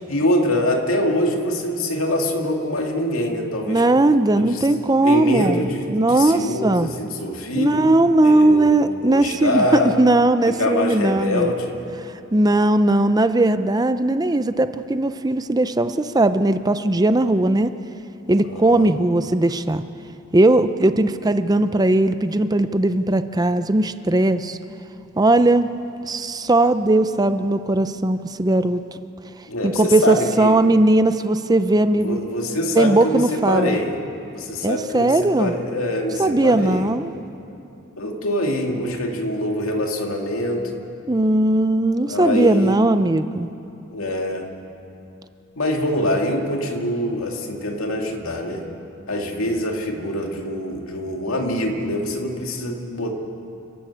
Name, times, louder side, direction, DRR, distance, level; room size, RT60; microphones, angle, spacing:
voice 1, 0.1-4.0 4.4-4.7 5.0-7.9 8.2-10.0 10.5-11.8 18.4-19.0 29.5-30.6 31.9-34.0 34.3-36.9 38.0-40.8 42.0-42.8 43.9-44.5 45.6-48.7 49.1-53.1, left 1 dB, 80° left, 2 dB, 2.4 m, -24 dB
voice 2, 3.7-6.9 7.6-11.5 12.3-17.7 18.3-19.8 20.3-24.6 25.2-25.7 26.1-28.8 29.6-32.2 32.8-33.8 34.6-35.5 36.2-37.1 41.1-43.5, right 2 dB, 20° right, 11 dB, 0.5 m, -18 dB
30.0 x 12.0 x 8.6 m, 2.7 s
head